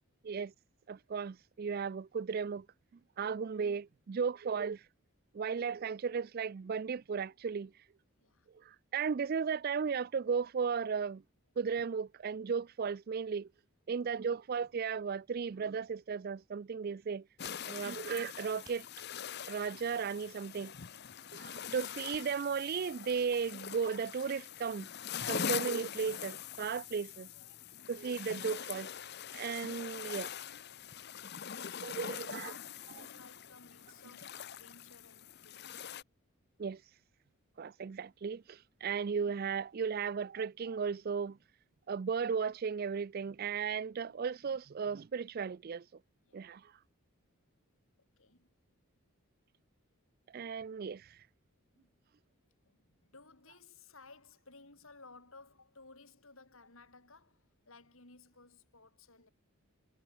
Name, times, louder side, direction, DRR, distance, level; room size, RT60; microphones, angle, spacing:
voice 1, 0.9-2.7 3.2-4.8 5.3-7.7 8.5-11.2 11.6-13.5 13.9-17.3 17.7-18.8 19.5-20.7 21.3-24.9 25.3-27.3 27.9-28.9 29.3-30.3 31.8-32.5 36.6-36.8 37.6-41.4 41.9-45.9 46.3-46.7 50.3-51.2, right 6 dB, 40° right, 0.3 m, -35 dB
voice 2, 8.2-8.5 13.9-14.1 17.6-18.0 21.0-21.4 27.8-27.9 31.6-35.9 46.3-46.5 48.0-48.5 49.2-49.3 51.7-52.0 52.6-59.3, left 3 dB, 65° left, 4.9 m, -59 dB
sound 1, 17.1-23.4, right 3 dB, 15° right, 3.3 m, -65 dB
sound 2, 17.4-36.0, left 8 dB, 45° left, 0.8 m, -43 dB
head